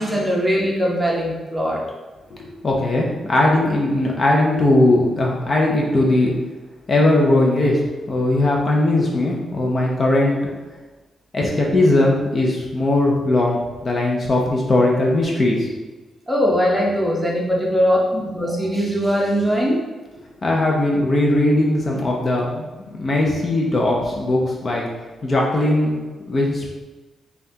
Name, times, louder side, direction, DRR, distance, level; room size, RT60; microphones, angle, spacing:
voice 1, 0.0-1.8 16.3-19.8, equal, 5° right, -3 dB, 0.8 m, -20 dB
voice 2, 2.6-6.3 6.9-10.4 11.3-15.7 20.4-22.7 23.0-24.9 25.2-26.0 26.3-26.7, left 2 dB, 35° left, -2 dB, 0.5 m, -19 dB
5.7 x 2.3 x 2.7 m, 1.2 s
cardioid pair, 125°, 0 cm